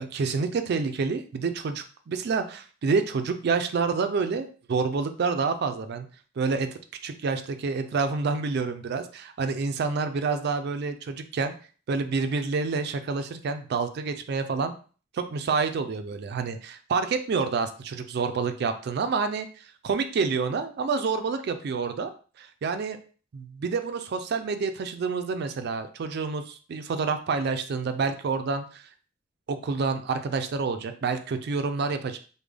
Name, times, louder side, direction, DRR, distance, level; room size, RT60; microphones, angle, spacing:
voice 1, 0.0-6.1 6.4-6.7 7.0-11.5 11.9-14.7 15.1-19.5 19.8-22.1 22.4-23.0 23.6-28.8 29.5-32.2, right 4 dB, 55° right, 8 dB, 0.4 m, -28 dB
3.3 x 2.1 x 3.5 m, 0.38 s
head